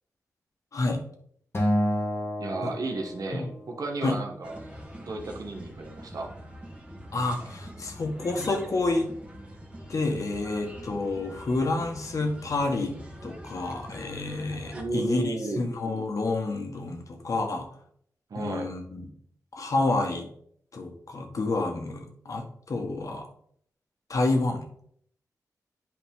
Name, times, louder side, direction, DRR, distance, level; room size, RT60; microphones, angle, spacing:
Acoustic guitar, 1.5-3.9, equal, 40° left, 1.7 m, -29 dB
voice 1, 2.4-4.6 5.0-6.3 14.7-15.7 18.3-18.7, right 2 dB, 70° right, 1 dB, 1.4 m, -33 dB
sound 1, 4.4-14.8, equal, 20° right, 1.7 m, -44 dB
voice 2, 7.1-9.1 9.9-13.0 13.2-17.7 18.3-19.1 19.5-20.3 20.7-23.3 24.1-24.6, left 2 dB, 60° left, 3 dB, 1.5 m, -29 dB
9.0 x 4.9 x 3.7 m, 0.65 s
wide cardioid pair, 80°, 6 cm